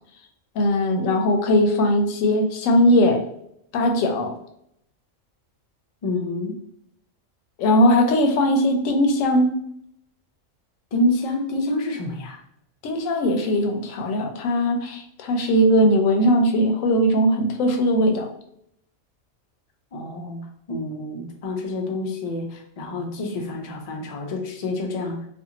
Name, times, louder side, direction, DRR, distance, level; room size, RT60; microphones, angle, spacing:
voice 1, 0.6-3.2 3.7-4.4 7.6-9.6 12.8-18.3, equal, 90° left, 4 dB, 1.0 m, -19 dB
voice 2, 6.0-6.6 10.9-12.4 19.9-25.3, left 1 dB, 60° left, 2 dB, 0.4 m, -28 dB
2.5 x 2.4 x 2.8 m, 0.73 s
omnidirectional pair, 1.3 m